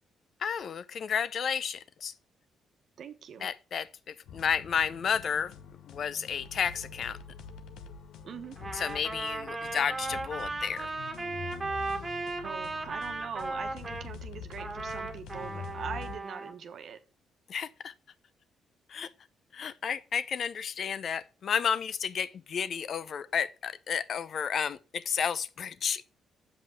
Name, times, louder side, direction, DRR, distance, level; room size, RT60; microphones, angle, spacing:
voice 1, 0.4-2.1 3.4-5.5 5.9-7.2 8.7-10.9 17.5-17.9 18.9-19.1 19.5-26.0, left 7 dB, 55° left, 0.8 m, -32 dB
voice 2, 3.0-3.5 8.3-8.6 12.4-17.0, right 7 dB, 60° right, 1.1 m, -42 dB
sound 1, 4.3-16.2, left 7 dB, 85° left, 1.0 m, -45 dB
Trumpet, 8.6-14.1 14.6-16.5, right 3 dB, 25° right, 1.8 m, -36 dB
7.5 x 5.4 x 7.1 m
cardioid pair, 90°, 0 cm